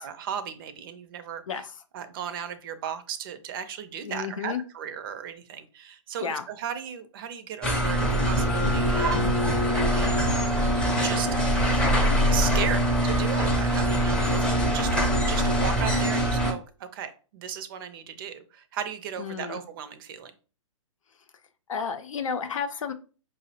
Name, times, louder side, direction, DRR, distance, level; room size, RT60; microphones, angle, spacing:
voice 1, 0.0-1.4 1.9-10.3 11.0-11.3 11.7-11.8 12.3-20.3, right 8 dB, 40° right, 10 dB, 0.5 m, -36 dB
voice 2, 4.0-4.6 6.2-6.5 19.2-19.6 21.7-22.9, left 6 dB, 75° left, 8 dB, 0.5 m, -32 dB
sound 1, 7.6-16.5, equal, 5° left, 0.5 m, -23 dB
4.9 x 2.0 x 2.7 m, 0.36 s
hypercardioid pair, 130°, 17 cm